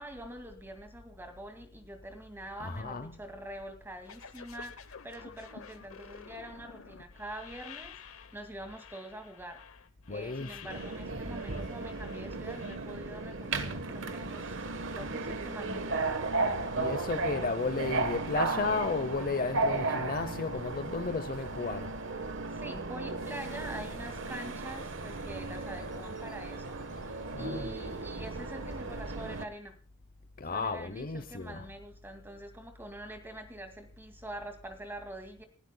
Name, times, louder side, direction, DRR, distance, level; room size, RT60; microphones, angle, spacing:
voice 1, 0.0-9.6 10.1-16.2 22.5-26.8 27.3-29.8 30.5-35.4, right 1 dB, 10° right, 2.3 m, -45 dB
voice 2, 2.6-3.2 10.1-10.8 16.8-21.9 27.3-27.7 30.4-31.7, left 4 dB, 45° left, 0.8 m, -33 dB
sound 1, 4.0-12.8, left 7 dB, 75° left, 1.0 m, -51 dB
Subway metro underground, 10.7-29.4, right 3 dB, 60° right, 1.3 m, -35 dB
sound 2, 23.3-28.7, right 1 dB, 40° right, 2.5 m, -59 dB
29.5 x 12.0 x 2.3 m
head